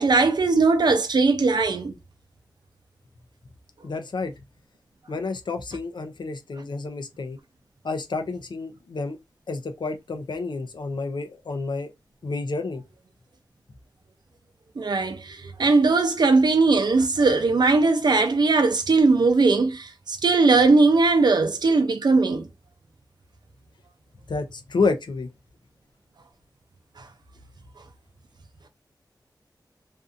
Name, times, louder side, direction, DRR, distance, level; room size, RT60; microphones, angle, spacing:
voice 1, 0.0-1.9 14.8-22.5, right 3 dB, 65° right, 0.6 m, -19 dB
voice 2, 3.8-4.3 5.1-7.4 7.8-9.2 9.5-11.9 12.2-12.8 24.3-25.3, left 3 dB, 75° left, 0.5 m, -29 dB
2.6 x 2.4 x 2.5 m
wide cardioid pair, 85°, 8 cm